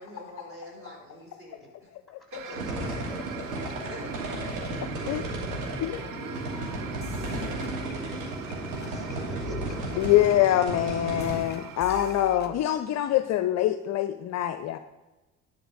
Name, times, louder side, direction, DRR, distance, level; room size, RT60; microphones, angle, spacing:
voice 1, 0.0-1.9 2.3-2.9 3.8-5.2 11.8-12.2, left 1 dB, 30° right, -1 dB, 4.1 m, -46 dB
sound 1, 2.3-12.4, right 9 dB, 55° right, 0.8 m, -44 dB
voice 2, 2.5-3.7 5.2-7.5 7.8-10.0, right 1 dB, ahead, 1 dB, 3.3 m, -45 dB
sound 2, 2.5-11.4, right 2 dB, 70° right, 2.7 m, -34 dB
voice 3, 5.8-6.9 10.0-14.8, left 12 dB, 40° left, 11 dB, 0.5 m, -25 dB
sound 3, 7.0-8.5 8.8-9.1 9.4-12.6, left 7 dB, 25° left, 1.0 m, -44 dB
11.0 x 5.3 x 6.4 m, 1.1 s
figure-of-eight pair, 60°, 41 cm